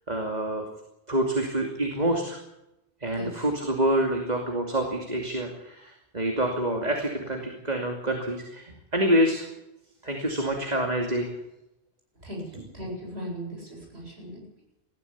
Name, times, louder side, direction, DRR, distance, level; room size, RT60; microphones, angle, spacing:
voice 1, 0.1-0.7 1.1-2.4 3.0-9.5 10.0-11.3, right 1 dB, 40° right, 2 dB, 2.8 m, -27 dB
voice 2, 12.2-14.4, equal, 85° right, 0 dB, 8.5 m, -37 dB
21.0 x 14.5 x 8.7 m, 0.89 s
omnidirectional pair, 1.1 m